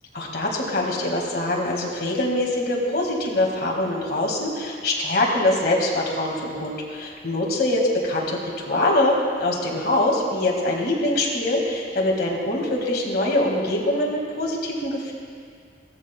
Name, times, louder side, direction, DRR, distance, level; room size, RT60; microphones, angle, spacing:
voice 1, 0.1-15.1, left 1 dB, 55° left, -2 dB, 1.8 m, -23 dB
15.5 x 14.0 x 2.2 m, 2.2 s
head